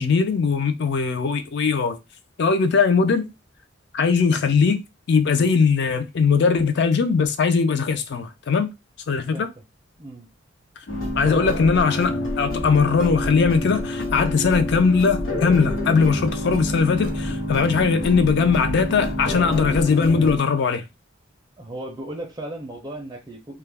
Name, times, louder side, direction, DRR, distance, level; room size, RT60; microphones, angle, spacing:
voice 1, 0.0-2.0 2.4-3.3 3.9-4.8 5.1-8.7 9.1-9.5 11.1-20.8, left 5 dB, 60° left, 0.4 m, -20 dB
sound 1, 10.9-20.4, left 1 dB, 90° left, 0.9 m, -27 dB
voice 2, 21.6-23.6, right 1 dB, 20° right, 0.4 m, -35 dB
2.3 x 2.0 x 3.2 m
head